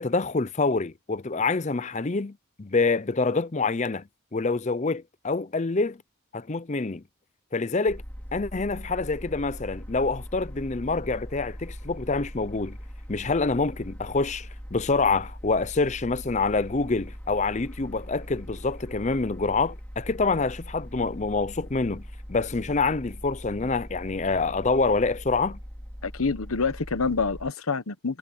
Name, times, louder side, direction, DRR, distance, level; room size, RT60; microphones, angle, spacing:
voice 1, 0.0-6.0 6.3-7.0 7.5-8.0 8.3-12.8 13.1-22.0 22.3-25.6, left 3 dB, 35° left, 0.6 m, -26 dB
sound 1, 7.9-27.5, equal, 10° left, 3.6 m, -41 dB
voice 2, 26.0-28.2, left 4 dB, 80° left, 1.1 m, -27 dB
head